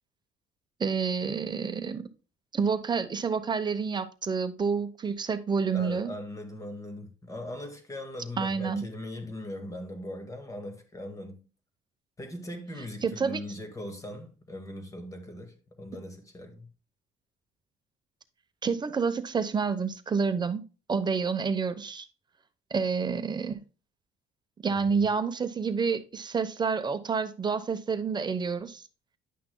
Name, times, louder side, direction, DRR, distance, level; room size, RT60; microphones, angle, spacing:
voice 1, 0.8-2.1 2.5-6.1 8.4-8.8 13.0-13.4 18.6-20.6 20.9-22.1 22.7-23.6 24.6-28.8, right 5 dB, 25° right, 0.8 m, -28 dB
voice 2, 5.7-11.4 12.2-16.7 24.7-25.0, left 1 dB, 20° left, 1.8 m, -40 dB
10.5 x 5.9 x 2.2 m
cardioid pair, 110°, 17 cm